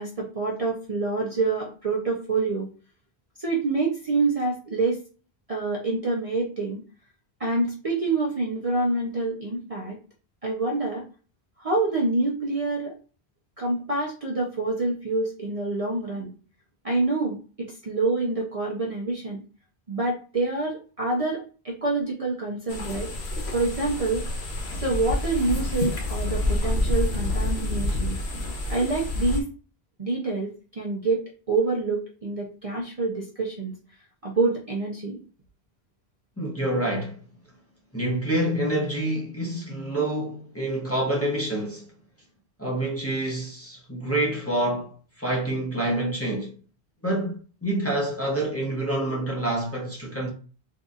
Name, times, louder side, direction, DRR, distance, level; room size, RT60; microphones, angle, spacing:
voice 1, 0.0-2.7 3.4-5.0 5.5-6.8 7.4-10.0 10.4-11.0 11.6-13.0 13.6-16.3 16.8-19.4 19.9-23.1 23.5-24.3 24.8-28.2 28.7-29.5 30.0-33.7 34.2-35.2, right 3 dB, 40° right, 0.7 m, -27 dB
sound 1, 22.7-29.4, left 1 dB, 80° left, 1.1 m, -28 dB
voice 2, 36.4-37.2 37.9-41.9 42.6-46.6 47.0-50.3, right 1 dB, 15° left, 0.9 m, -27 dB
3.9 x 2.7 x 2.4 m
omnidirectional pair, 1.1 m